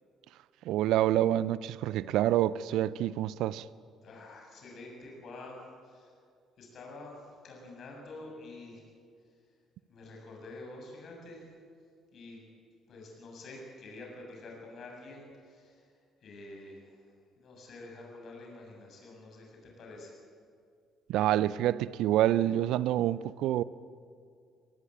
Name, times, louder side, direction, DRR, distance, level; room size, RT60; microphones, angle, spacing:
voice 1, 0.7-3.6 21.1-23.6, right 13 dB, 70° right, 0.5 m, -27 dB
voice 2, 4.0-6.1 6.6-8.8 9.9-11.5 12.1-12.4 12.9-15.9 16.2-17.0 17.4-20.2, left 2 dB, 55° left, 7.4 m, -48 dB
23.0 x 19.0 x 8.7 m
hypercardioid pair, 50°, 0 cm